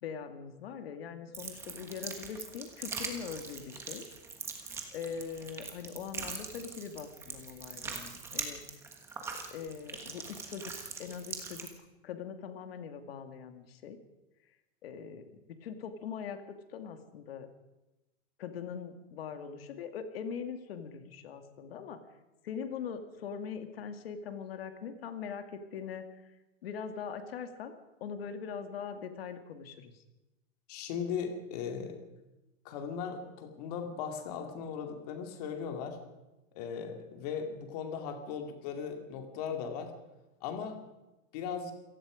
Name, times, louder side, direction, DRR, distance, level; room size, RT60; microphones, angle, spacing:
voice 1, 0.0-4.0 4.9-8.6 9.5-11.7 12.0-14.0 14.8-15.2 15.6-17.5 18.4-22.0 22.4-26.0 26.6-27.7 28.0-29.9, left 7 dB, 50° left, 7 dB, 2.4 m, -41 dB
sound 1, 1.3-11.7, right 4 dB, 5° right, 1.3 m, -42 dB
voice 2, 30.7-32.0 32.6-36.0 36.5-39.9 40.4-40.8 41.3-41.7, left 7 dB, 30° left, 5 dB, 2.6 m, -38 dB
27.5 x 18.0 x 5.1 m, 1.0 s
supercardioid pair, 180°, 39 cm